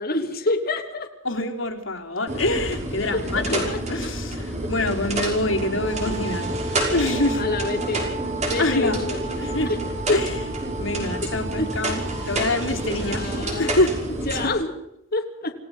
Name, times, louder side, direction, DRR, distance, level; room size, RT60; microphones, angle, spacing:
voice 1, 0.0-1.1 3.0-3.8 7.3-8.1 8.4-9.3 9.6-9.8 10.1-10.2 11.6-11.7 13.0-13.8 14.2-14.7 15.1-15.5, left 2 dB, 50° left, 2 dB, 3.2 m, -27 dB
voice 2, 1.2-3.6 3.9-6.6 6.9-7.4 8.6-9.0 9.4-9.7 10.1-10.3 10.8-12.0 12.3-14.0 14.4-14.6, left 2 dB, 80° left, 2 dB, 3.8 m, -25 dB
sound 1, 2.3-14.5, right 1 dB, 35° right, 6.0 m, -29 dB
Wind instrument woodwind instrument, 5.5-13.5, right 2 dB, 70° right, 6.9 m, -35 dB
28.5 x 18.5 x 5.8 m, 0.80 s
head